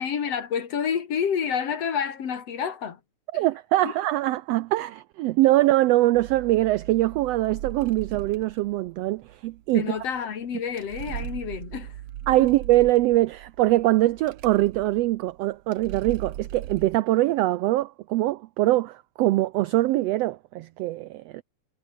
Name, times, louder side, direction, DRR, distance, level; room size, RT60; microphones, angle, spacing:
voice 1, 0.0-3.0 3.8-3.9 9.7-12.0 12.4-12.5, left 7 dB, 55° left, 3.1 m, -29 dB
voice 2, 3.3-9.9 12.3-21.4, right 16 dB, 80° right, 1.4 m, -23 dB
sound 1, 6.1-17.0, right 12 dB, 65° right, 1.7 m, -39 dB
omnidirectional pair, 3.5 m